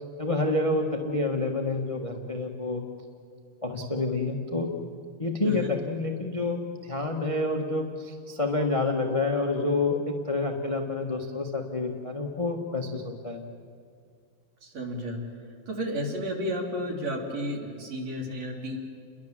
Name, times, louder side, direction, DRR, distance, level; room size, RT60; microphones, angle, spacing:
voice 1, 0.2-2.8 3.6-4.7 5.2-13.4, left 2 dB, 25° left, 3 dB, 0.7 m, -28 dB
voice 2, 14.6-15.2 15.7-18.8, equal, 60° right, 0 dB, 4.4 m, -32 dB
29.5 x 22.5 x 7.5 m, 2.2 s
omnidirectional pair, 3.4 m